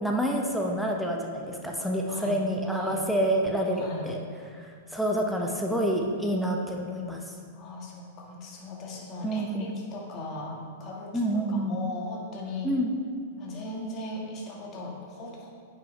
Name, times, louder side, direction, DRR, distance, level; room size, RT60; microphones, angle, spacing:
voice 1, 0.0-4.2 4.6-7.2 9.2-9.7 11.1-11.8 12.6-12.9, right 1 dB, ahead, 0 dB, 0.7 m, -28 dB
voice 2, 2.1-2.4 2.7-3.0 3.7-4.1 7.5-12.7 13.4-15.5, left 2 dB, 35° left, -2 dB, 1.7 m, -38 dB
9.3 x 5.8 x 3.2 m, 2.1 s
hypercardioid pair, 105°, 0 cm